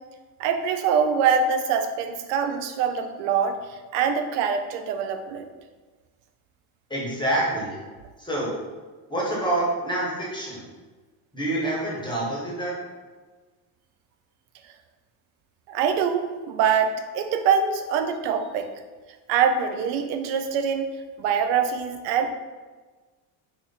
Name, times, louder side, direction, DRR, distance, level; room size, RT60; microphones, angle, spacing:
voice 1, 0.4-5.5 15.7-18.7 19.3-20.9 21.2-22.3, right 6 dB, 90° right, 7 dB, 0.6 m, -24 dB
voice 2, 6.9-7.8 8.2-8.5 9.1-10.6 11.3-12.7, right 1 dB, 10° left, -5 dB, 0.9 m, -27 dB
2.9 x 2.5 x 4.0 m, 1.3 s
supercardioid pair, 105°, 49 cm